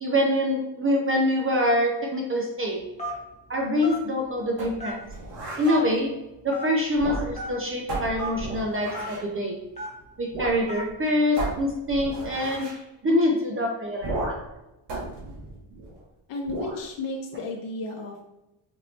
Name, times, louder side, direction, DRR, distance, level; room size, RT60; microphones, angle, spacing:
voice 1, 0.0-2.8 3.5-5.0 5.6-6.1 6.4-9.6 10.2-12.7 13.0-14.1, left 1 dB, 30° right, 0 dB, 0.5 m, -25 dB
Telephone, 3.0-3.3 3.8-4.0 4.8-5.2 5.7-5.8 6.5-6.7 7.3-7.5 8.2-8.3 8.9-9.1 9.8-10.0 10.7-10.9, right 1 dB, 15° left, 1.1 m, -34 dB
sound 1, 4.6-5.8 6.9-7.5 7.9-9.3 10.3-10.6 10.9-11.0 11.4-12.8 14.0-14.5 14.9-16.0 16.4-16.8, right 2 dB, 60° right, 1.4 m, -34 dB
voice 2, 16.3-18.3, left 2 dB, 65° left, 0 dB, 0.7 m, -33 dB
4.4 x 3.1 x 2.7 m, 0.94 s
cardioid pair, 135°, 47 cm